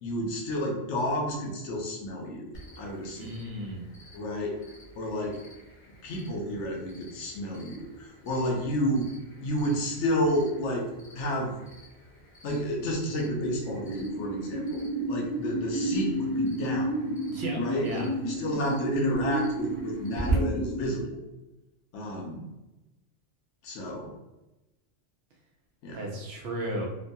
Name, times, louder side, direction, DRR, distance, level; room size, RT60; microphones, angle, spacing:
voice 1, 0.0-3.3 4.1-4.6 4.9-5.4 6.0-9.1 9.4-10.9 11.1-11.5 12.4-17.0 17.6-21.2 21.9-22.5 23.6-24.1 25.8-26.0, equal, 85° left, 0 dB, 1.0 m, -31 dB
Cricket, 2.5-20.3, right 2 dB, 45° left, 0.9 m, -44 dB
voice 2, 3.2-3.9 17.3-18.1 25.9-26.9, right 1 dB, 65° right, 0 dB, 0.8 m, -35 dB
sound 1, 13.2-20.8, right 1 dB, 10° left, 0.8 m, -31 dB
3.0 x 2.2 x 2.6 m, 1.0 s
omnidirectional pair, 1.2 m